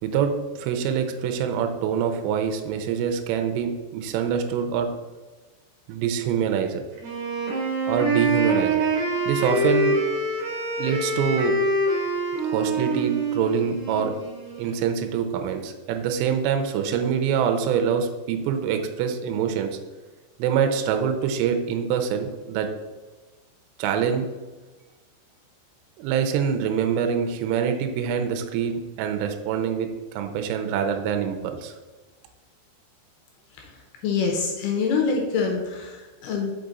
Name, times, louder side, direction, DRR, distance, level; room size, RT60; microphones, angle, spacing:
voice 1, 0.0-4.9 5.9-6.8 7.9-8.8 9.3-10.0 10.8-11.5 12.4-14.1 14.6-19.8 20.4-22.7 23.8-24.3 26.0-31.7, right 7 dB, 80° right, 6 dB, 2.6 m, -25 dB
Wind instrument woodwind instrument, 7.0-14.9, right 2 dB, 65° right, 2.0 m, -25 dB
voice 2, 34.0-36.5, left 5 dB, 80° left, 1 dB, 2.4 m, -25 dB
6.0 x 4.9 x 4.0 m, 1.2 s
omnidirectional pair, 5.3 m